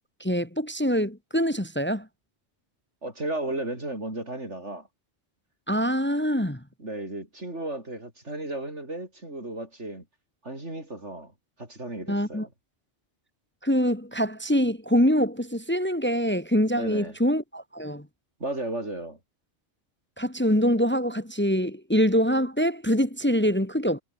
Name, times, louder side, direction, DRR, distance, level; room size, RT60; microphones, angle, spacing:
voice 1, 0.2-2.1 5.7-6.6 12.1-12.5 13.6-18.1 20.2-24.0, equal, 10° left, 1.8 m, -24 dB
voice 2, 3.0-4.9 6.8-10.1 10.4-11.3 11.6-12.5 16.8-17.2 18.4-19.2, right 1 dB, 70° right, 7.0 m, -34 dB
omnidirectional pair, 1.2 m